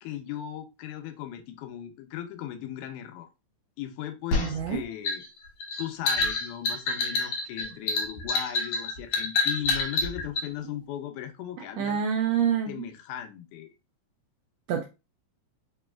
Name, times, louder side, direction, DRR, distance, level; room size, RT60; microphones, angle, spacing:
voice 1, 0.0-3.3 3.8-5.2 5.8-12.0 12.7-13.7, left 11 dB, 85° left, 2.1 m, -37 dB
sound 1, 4.3-10.5, left 3 dB, 65° left, 2.0 m, -27 dB
voice 2, 4.4-4.8 11.8-12.9 14.7-14.8, right 8 dB, 85° right, 1.5 m, -27 dB
5.1 x 3.1 x 2.3 m
omnidirectional pair, 3.5 m